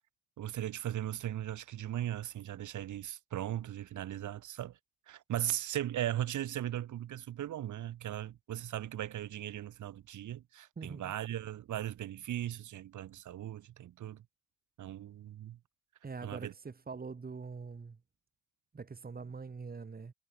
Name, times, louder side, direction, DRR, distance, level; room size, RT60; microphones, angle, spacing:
voice 1, 0.4-4.8 5.1-14.2 14.8-15.6 16.2-16.5, right 12 dB, 75° right, 6.1 m, -38 dB
voice 2, 10.8-11.1 16.0-18.0 18.7-20.1, right 4 dB, 30° right, 3.6 m, -44 dB
cardioid pair, 90°, 30 cm